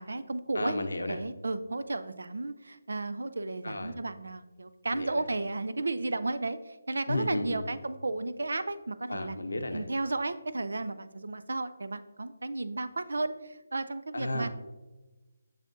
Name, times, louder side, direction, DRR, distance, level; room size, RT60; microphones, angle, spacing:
voice 1, 0.0-0.7 1.1-9.4 9.7-14.5, right 2 dB, 75° right, 12 dB, 0.4 m, -33 dB
voice 2, 0.5-1.2 3.6-3.9 4.9-5.2 7.1-7.6 9.1-9.8 14.1-14.5, left 2 dB, 80° left, 8 dB, 0.7 m, -33 dB
6.4 x 6.3 x 2.6 m, 1.2 s
figure-of-eight pair, 155°, 0 cm